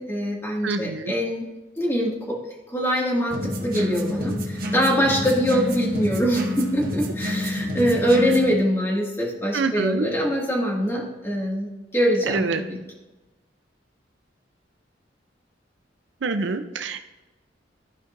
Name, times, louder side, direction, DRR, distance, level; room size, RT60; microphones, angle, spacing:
voice 1, 0.0-1.5 1.8-2.4 2.7-12.8, equal, 15° left, -3 dB, 1.9 m, -23 dB
voice 2, 0.6-1.1 9.5-10.1 12.3-12.6 16.2-17.0, right 4 dB, 70° right, 8 dB, 0.5 m, -26 dB
sound 1, 3.3-8.5, left 1 dB, 50° right, 1.2 m, -28 dB
14.0 x 5.2 x 2.7 m, 1.1 s
head